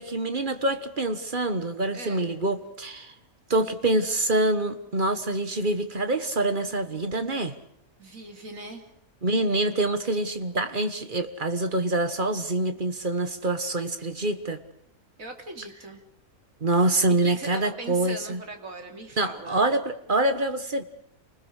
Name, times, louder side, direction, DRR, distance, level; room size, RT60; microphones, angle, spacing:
voice 1, 0.0-3.1 3.5-7.5 9.2-14.6 16.6-18.4 19.2-20.8, right 2 dB, 35° right, 9 dB, 1.5 m, -26 dB
voice 2, 1.9-2.3 8.0-8.8 15.2-16.0 17.2-19.6, right 2 dB, 60° right, 4 dB, 3.3 m, -39 dB
28.5 x 20.5 x 6.6 m, 0.72 s
omnidirectional pair, 1.6 m